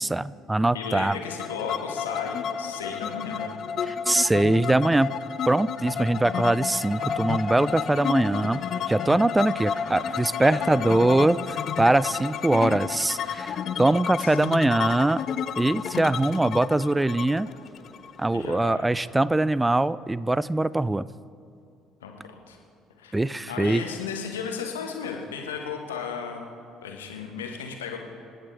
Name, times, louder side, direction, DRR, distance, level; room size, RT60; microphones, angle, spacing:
voice 1, 0.0-1.2 3.9-5.1 5.5-8.6 8.9-11.4 11.8-15.2 15.6-17.5 18.2-21.1 23.1-23.8, right 2 dB, 10° right, 19 dB, 0.4 m, -22 dB
voice 2, 0.7-3.6 10.4-11.2 12.5-12.7 14.2-14.4 18.3-18.8 22.0-22.6 23.0-26.4 26.8-28.0, left 6 dB, 75° left, 2 dB, 1.6 m, -35 dB
sound 1, 0.8-18.5, left 8 dB, 50° left, 0.6 m, -31 dB
sound 2, 5.8-18.5, left 2 dB, 15° left, 1.5 m, -44 dB
28.0 x 10.0 x 3.6 m, 2.4 s
figure-of-eight pair, 55°, 0 cm